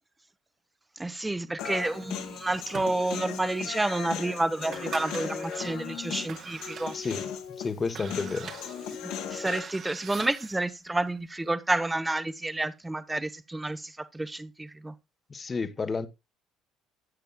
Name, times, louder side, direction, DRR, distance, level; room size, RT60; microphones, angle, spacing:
voice 1, 1.0-6.9 9.3-14.9, right 2 dB, 15° right, 0.8 m, -30 dB
Human voice, 1.6-9.6, left 8 dB, 70° left, 1.7 m, -37 dB
sound 1, 1.9-3.4 3.9-4.0 4.5-5.7 6.2-10.7, right 7 dB, 50° right, 1.3 m, -44 dB
voice 2, 6.9-8.5 15.3-16.1, left 4 dB, 30° left, 1.1 m, -31 dB
12.5 x 9.1 x 2.2 m
hypercardioid pair, 60°, 0 cm